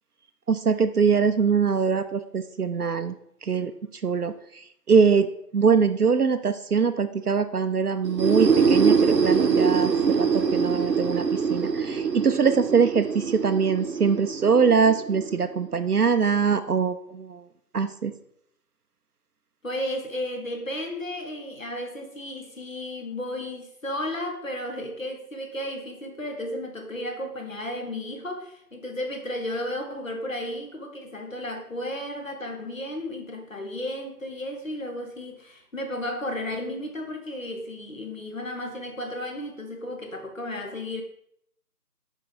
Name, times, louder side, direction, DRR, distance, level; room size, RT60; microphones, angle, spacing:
voice 1, 0.5-3.1 3.4-3.7 4.0-5.3 5.5-17.4 17.7-18.1, right 5 dB, 70° right, 9 dB, 0.6 m, -23 dB
sound 1, 8.0-15.7, right 6 dB, 85° right, 1.0 m, -24 dB
voice 2, 19.6-41.0, left 1 dB, 55° left, 3 dB, 1.5 m, -33 dB
6.1 x 4.5 x 5.2 m, 0.73 s
figure-of-eight pair, 175°, 48 cm